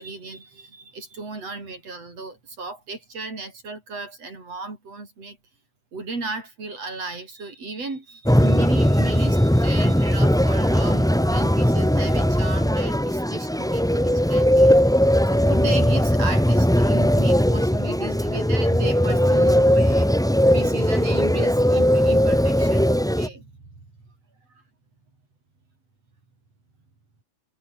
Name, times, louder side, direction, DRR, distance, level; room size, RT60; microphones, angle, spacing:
voice 1, 0.0-5.4 5.9-15.0 15.3-23.5 24.5-24.6, right 3 dB, 55° right, 7.8 m, -35 dB
sound 1, 8.2-23.3, equal, ahead, 1.0 m, -19 dB
omnidirectional pair, 3.4 m